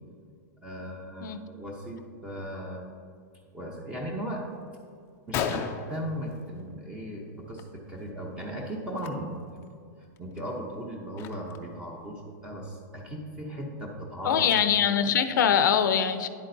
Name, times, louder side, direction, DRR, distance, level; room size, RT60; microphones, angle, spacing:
voice 1, 0.6-2.9 3.5-4.5 5.3-9.7 10.2-14.5, equal, 10° right, -1 dB, 0.7 m, -37 dB
Gunshot gunfire, 4.6-4.7 5.1-5.2 5.3-6.9 7.3-7.6 7.9-8.1 8.9-9.1 9.6-9.7 10.2-11.7, left 7 dB, 25° left, 0.4 m, -35 dB
voice 2, 14.2-16.3, left 8 dB, 80° left, 10 dB, 0.6 m, -23 dB
10.5 x 8.3 x 2.7 m, 2.3 s
supercardioid pair, 160°, 10 cm